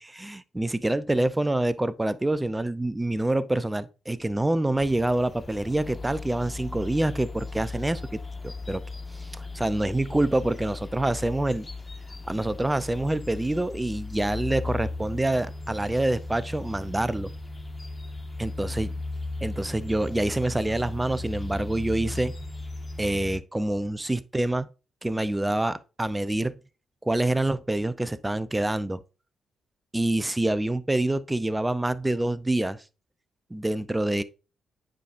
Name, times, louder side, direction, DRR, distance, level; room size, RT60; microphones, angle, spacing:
voice 1, 0.2-8.8 9.1-11.7 12.3-17.3 18.4-18.9 19.4-22.3 23.0-24.7 25.0-26.6 27.0-29.0 29.9-32.8 33.5-34.2, right 1 dB, 15° right, 0.6 m, -26 dB
sound 1, 4.8-23.4, left 3 dB, 30° left, 1.2 m, -37 dB
9.1 x 4.9 x 2.6 m
hypercardioid pair, 45°, 0 cm